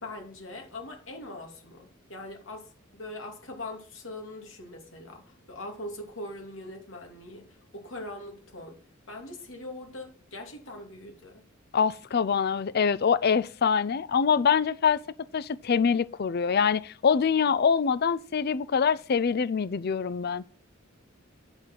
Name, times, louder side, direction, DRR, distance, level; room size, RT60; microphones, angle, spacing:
voice 1, 0.0-7.4 7.7-8.8 9.1-11.4, left 2 dB, 70° left, 2.8 m, -41 dB
voice 2, 11.7-15.0 15.3-20.4, left 6 dB, 50° left, 0.5 m, -24 dB
8.8 x 6.8 x 5.9 m
head